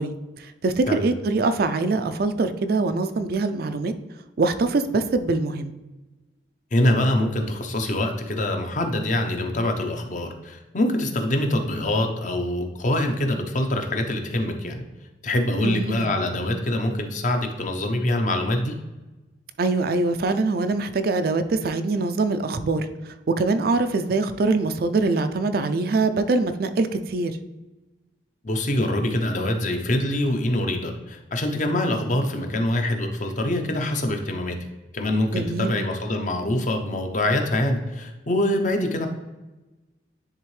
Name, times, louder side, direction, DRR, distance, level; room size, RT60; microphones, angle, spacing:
voice 1, 0.0-3.9 4.4-5.7 15.6-16.1 19.6-27.3 35.3-35.8, right 3 dB, 55° right, 9 dB, 0.4 m, -23 dB
voice 2, 6.7-14.8 15.2-18.7 28.4-34.6 34.9-39.1, left 1 dB, 45° left, 4 dB, 0.7 m, -24 dB
10.0 x 3.5 x 3.2 m, 1.1 s
head